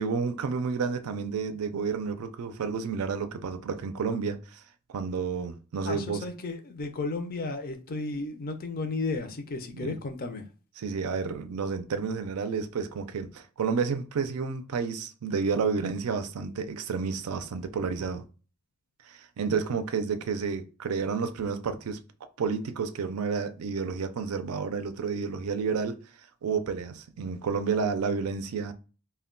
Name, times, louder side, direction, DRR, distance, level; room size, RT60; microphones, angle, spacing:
voice 1, 0.0-4.6 4.9-6.2 9.7-10.0 10.8-18.2 19.1-22.0 22.4-26.0 26.4-28.7, right 5 dB, 80° right, 0.4 m, -30 dB
voice 2, 5.9-10.5, left 3 dB, 45° left, 0.5 m, -33 dB
2.2 x 2.2 x 3.6 m
head